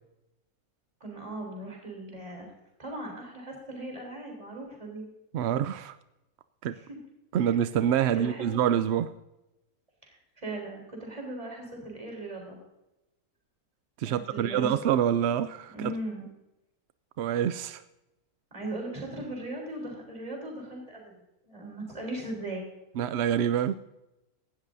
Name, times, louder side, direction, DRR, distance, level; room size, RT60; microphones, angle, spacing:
voice 1, 1.0-2.5 2.8-5.0 6.7-7.0 8.1-8.5 10.0-12.6 14.0-14.7 15.7-16.3 18.5-21.1 21.4-22.6, right 1 dB, 25° right, 3.7 m, -38 dB
voice 2, 5.3-6.0 6.6-6.8 7.3-9.1 14.0-16.0 17.2-17.8 23.0-23.7, right 9 dB, 70° right, 0.6 m, -26 dB
17.5 x 13.0 x 2.7 m
omnidirectional pair, 1.6 m